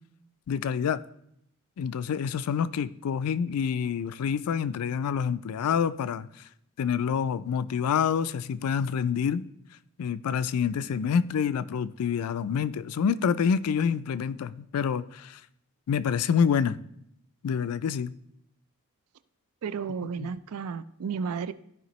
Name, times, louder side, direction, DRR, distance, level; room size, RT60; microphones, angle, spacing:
voice 1, 0.5-1.0 1.8-6.3 6.8-9.5 10.0-15.4 15.9-16.8 17.4-18.1 20.2-20.3, left 7 dB, 80° left, 0.4 m, -27 dB
voice 2, 19.6-21.5, right 6 dB, 80° right, 0.4 m, -33 dB
14.0 x 5.0 x 3.1 m
head